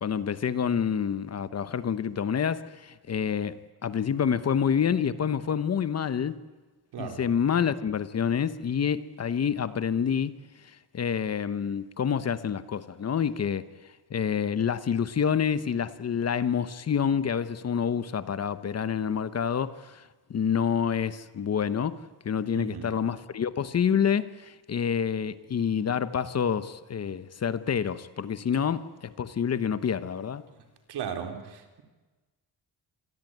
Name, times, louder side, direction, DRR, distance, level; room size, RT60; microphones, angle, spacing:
voice 1, 0.0-6.4 7.0-10.4 10.9-13.7 14.1-20.0 20.3-22.0 22.2-30.4, left 7 dB, 40° left, 1.0 m, -28 dB
voice 2, 6.9-7.2 22.5-23.0 30.9-31.8, right 7 dB, 75° right, 3.9 m, -36 dB
27.5 x 22.0 x 9.3 m
wide cardioid pair, 165°, 40 cm